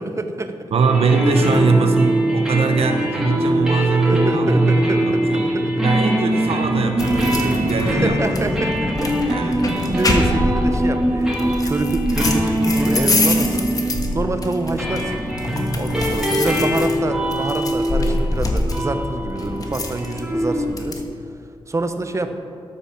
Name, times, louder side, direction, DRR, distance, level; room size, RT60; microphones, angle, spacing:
voice 1, 0.0-0.5 4.0-5.7 7.8-13.7 14.1-15.2 15.7-21.0 21.7-22.3, right 2 dB, 30° right, 8 dB, 0.9 m, -26 dB
voice 2, 0.7-5.5 5.8-8.3 9.3-9.6, right 4 dB, 85° right, 5 dB, 0.9 m, -20 dB
sound 1, 0.8-20.7, equal, 5° right, 2.9 m, -22 dB
sound 2, 7.0-21.0, left 2 dB, 40° left, 1.4 m, -25 dB
13.0 x 8.8 x 6.0 m, 2.7 s
wide cardioid pair, 130°, 10 cm